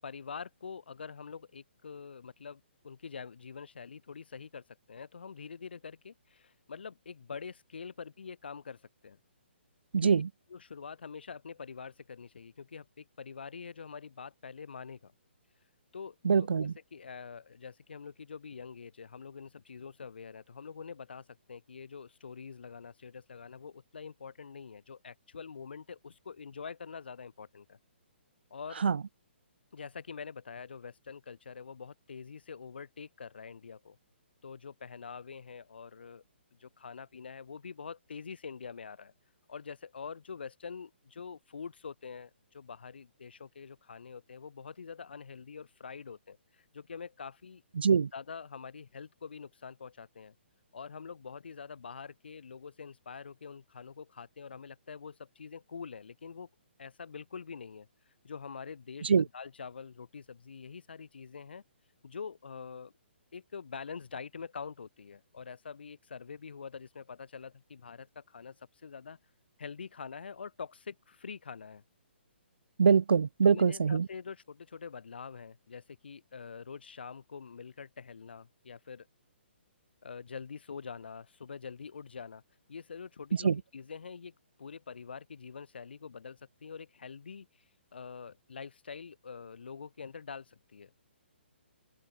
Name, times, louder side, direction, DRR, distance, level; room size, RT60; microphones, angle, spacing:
voice 1, 0.0-9.2 10.0-10.1 10.5-15.1 15.9-27.8 28.5-28.9 29.7-34.0 34.4-36.2 36.6-39.1 39.5-47.6 48.1-50.3 50.7-56.5 56.8-57.9 58.2-61.6 62.0-62.9 63.3-69.2 69.6-71.8 73.4-79.1 80.0-82.4 82.7-87.5 87.9-91.0, left 6 dB, 60° left, 6.8 m, -45 dB
voice 2, 9.9-10.3 16.2-16.7 28.8-29.0 47.8-48.1 59.0-59.2 72.8-74.1 83.4-83.6, right 6 dB, 60° right, 0.6 m, -24 dB
open air
figure-of-eight pair, 130°, 6 cm